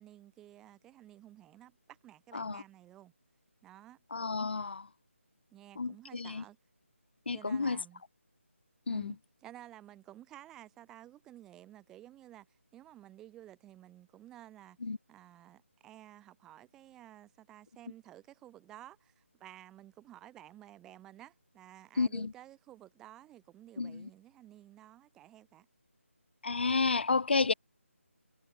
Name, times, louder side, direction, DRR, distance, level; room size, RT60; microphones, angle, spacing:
voice 1, 0.0-3.1 3.6-4.0 5.5-6.6 7.3-8.0 8.9-14.8 15.1-25.7, right 13 dB, 5° right, 4.9 m, -53 dB
voice 2, 4.1-4.9 5.8-6.4 7.3-7.8 8.9-9.1 14.8-15.0 22.0-22.3 23.8-24.1 26.4-27.5, left 4 dB, 50° left, 0.4 m, -31 dB
figure-of-eight pair, 175°, 8 cm